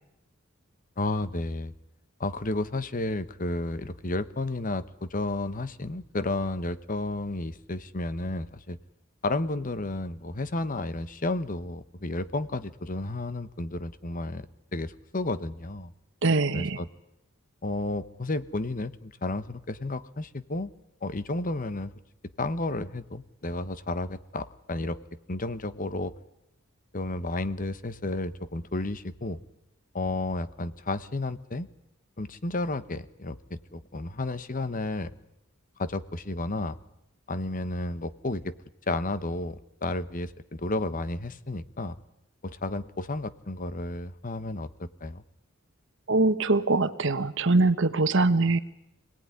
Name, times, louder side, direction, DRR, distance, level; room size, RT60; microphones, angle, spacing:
voice 1, 1.0-1.7 2.2-8.8 9.2-14.5 14.7-15.9 16.5-16.9 17.6-20.7 21.0-21.9 22.4-25.0 25.3-26.1 26.9-29.4 29.9-31.7 32.2-35.1 35.8-36.8 37.3-38.5 38.9-42.0 42.4-45.2, left 2 dB, 40° left, 14 dB, 1.1 m, -32 dB
voice 2, 16.2-16.8 46.1-48.6, right 3 dB, 65° right, 12 dB, 1.3 m, -23 dB
25.5 x 18.5 x 9.8 m, 0.85 s
head